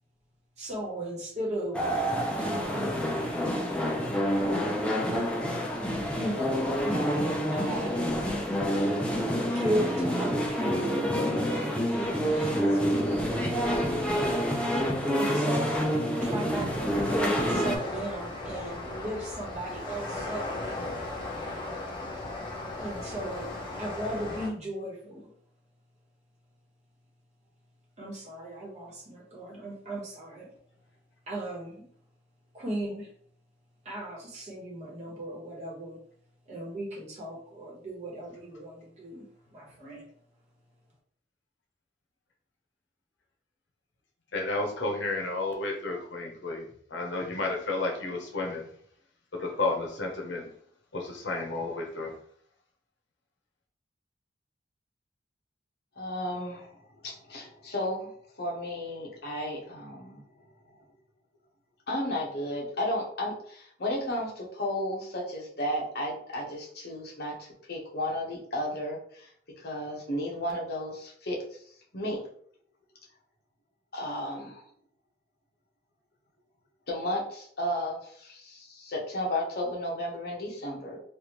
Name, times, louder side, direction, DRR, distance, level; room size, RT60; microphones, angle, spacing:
voice 1, 0.6-1.9 2.4-2.9 6.2-8.0 9.5-13.4 15.2-20.4 22.8-23.5 23.8-25.3 28.0-30.5 31.3-31.8 32.5-33.1 33.8-36.0 36.5-39.2 39.5-40.0, right 1 dB, 40° right, -4 dB, 1.2 m, -36 dB
sound 1, 1.7-17.8, equal, 5° left, 0.4 m, -28 dB
sound 2, 16.5-24.5, left 2 dB, 25° left, 0.8 m, -37 dB
voice 2, 44.3-46.6 46.9-48.6 49.4-50.5 50.9-52.1, left 2 dB, 80° left, 1 dB, 0.8 m, -31 dB
voice 3, 56.0-58.1 58.4-60.2 61.9-69.3 69.6-71.6 71.9-72.2 73.9-74.6 76.9-81.0, left 1 dB, 60° left, -3 dB, 1.0 m, -33 dB
3.4 x 2.4 x 3.0 m, 0.63 s
head